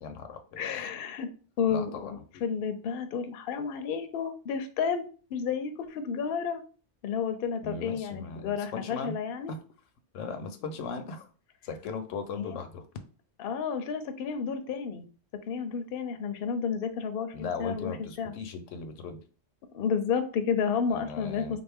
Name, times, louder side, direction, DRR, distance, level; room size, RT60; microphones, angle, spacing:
voice 1, 0.0-0.6 1.7-2.1 7.6-9.2 9.5-9.6 10.1-11.3 11.6-12.8 17.3-19.2 20.9-21.6, left 4 dB, 85° left, 8 dB, 0.9 m, -38 dB
voice 2, 0.6-1.3 1.6-5.1 5.3-6.6 7.0-9.5 12.4-12.6 13.4-15.1 15.5-18.3 19.7-21.6, left 6 dB, 60° left, 8 dB, 0.7 m, -31 dB
3.7 x 2.5 x 3.4 m, 0.39 s
omnidirectional pair, 1.2 m